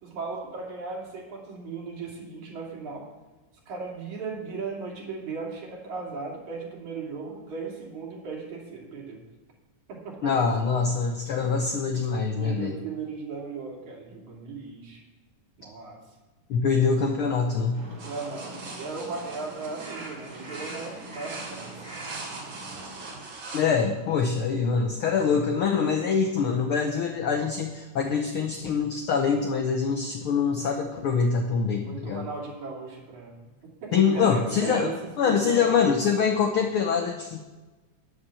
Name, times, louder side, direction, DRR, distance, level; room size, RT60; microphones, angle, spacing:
voice 1, 0.0-3.1 3.7-9.2 9.9-10.4 12.3-15.0 15.6-16.0 18.0-22.0 22.4-22.5 31.8-33.4 33.8-36.0, right 4 dB, 65° right, -2 dB, 3.9 m, -37 dB
voice 2, 10.2-12.8 16.5-17.8 23.5-32.3 33.9-34.9 35.2-37.4, left 6 dB, 85° left, 3 dB, 1.2 m, -24 dB
Crow, 17.7-23.2, right 2 dB, 30° right, 2.6 m, -42 dB
sound 1, 18.0-23.6, right 3 dB, 85° right, 4.4 m, -42 dB
9.9 x 8.8 x 7.0 m, 1.2 s
omnidirectional pair, 3.7 m